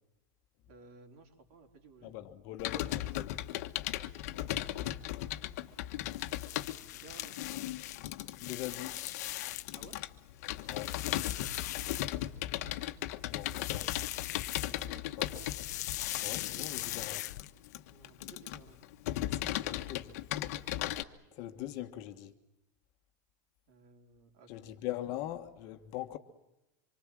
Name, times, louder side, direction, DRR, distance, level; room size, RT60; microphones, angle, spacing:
voice 1, 0.7-2.2 4.3-5.2 6.9-7.4 9.7-10.0 13.3-13.8 14.9-15.5 17.9-18.8 21.5-21.7 23.7-24.7, right 3 dB, 50° right, 4.2 m, -57 dB
voice 2, 2.0-3.4 5.2-5.3 5.7-6.7 8.4-9.0 10.7-10.9 13.3-13.8 15.2-15.4 16.2-17.2 19.3-20.2 21.3-22.3 24.5-26.2, left 13 dB, 40° left, 1.5 m, -42 dB
Computer keyboard, 2.6-21.0, left 14 dB, 55° left, 1.4 m, -37 dB
sound 1, 6.0-9.9 10.3-12.5 13.3-14.9 15.2-17.7, left 16 dB, 75° left, 0.8 m, -40 dB
26.5 x 24.0 x 7.6 m
supercardioid pair, 175°, 9 cm